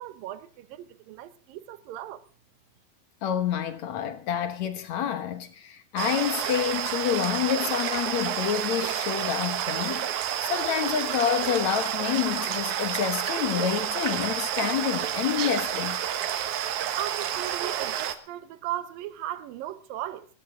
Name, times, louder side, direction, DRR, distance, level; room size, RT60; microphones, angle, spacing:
voice 1, 0.0-2.2 17.0-20.3, right 12 dB, 80° right, 2.6 m, -37 dB
voice 2, 3.2-16.0, left 9 dB, 65° left, 2.1 m, -28 dB
sound 1, 6.0-18.1, right 10 dB, 65° right, 2.4 m, -29 dB
20.0 x 14.0 x 3.6 m
omnidirectional pair, 4.1 m